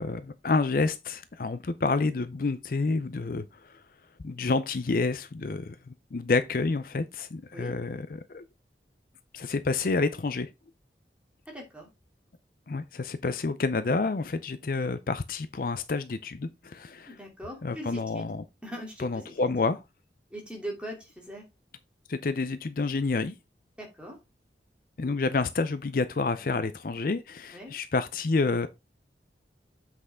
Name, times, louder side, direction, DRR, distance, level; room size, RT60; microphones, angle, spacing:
voice 1, 0.0-3.7 4.2-8.4 9.3-10.5 12.7-17.1 17.6-18.4 19.0-19.8 22.1-23.3 25.0-28.7, left 3 dB, 50° left, 0.5 m, -29 dB
voice 2, 11.5-11.9 17.1-18.3 18.6-19.5 20.3-21.4 23.8-24.2 27.5-27.7, equal, 5° right, 2.8 m, -41 dB
7.7 x 6.1 x 3.6 m
head